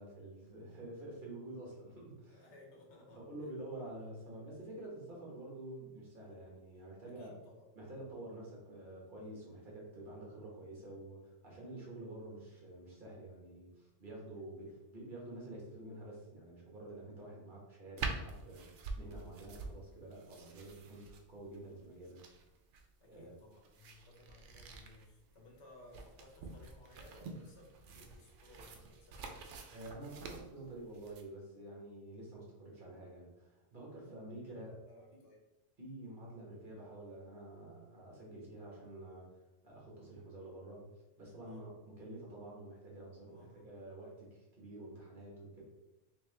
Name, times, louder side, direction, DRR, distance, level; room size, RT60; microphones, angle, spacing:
voice 1, 0.0-2.4 3.1-7.3 7.7-18.7 19.0-22.2 23.0-23.3 29.7-34.7 35.8-39.4 39.6-40.9 41.2-45.6, right 1 dB, 45° right, -3 dB, 1.3 m, -49 dB
voice 2, 2.3-3.2 7.2-7.7 10.3-10.4 23.0-29.4 34.4-35.4 41.4-41.7 43.3-43.7, left 2 dB, 80° left, -1 dB, 1.3 m, -59 dB
sound 1, 18.0-31.2, right 4 dB, 80° right, 0.9 m, -47 dB
3.4 x 3.2 x 3.2 m, 1.0 s
omnidirectional pair, 1.2 m